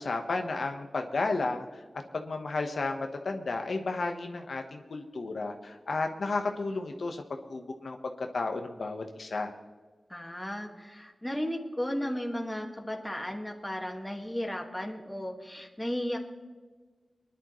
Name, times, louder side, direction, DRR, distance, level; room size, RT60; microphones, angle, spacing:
voice 1, 0.0-1.7 2.1-7.2 7.5-9.5, left 3 dB, 85° left, 4 dB, 1.1 m, -32 dB
voice 2, 10.1-16.2, equal, 10° left, 2 dB, 1.8 m, -34 dB
23.5 x 11.0 x 3.1 m, 1.4 s
wide cardioid pair, 80°, 0 cm